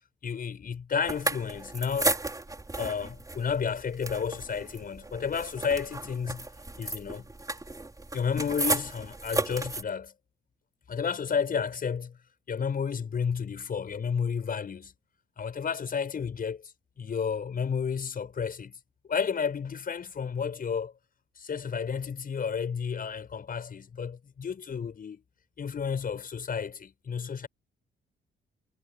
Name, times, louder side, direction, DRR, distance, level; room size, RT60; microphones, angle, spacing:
voice 1, 0.2-2.2 2.7-6.5 6.8-7.3 8.1-10.1 10.9-12.1 12.5-14.9 15.4-16.7 17.0-18.8 19.1-20.9 21.4-25.2 25.6-27.5, left 6 dB, 45° left, 6.4 m, -31 dB
sound 1, 1.0-9.8, right 2 dB, 15° right, 4.9 m, -34 dB
cardioid pair, 90°, 20 cm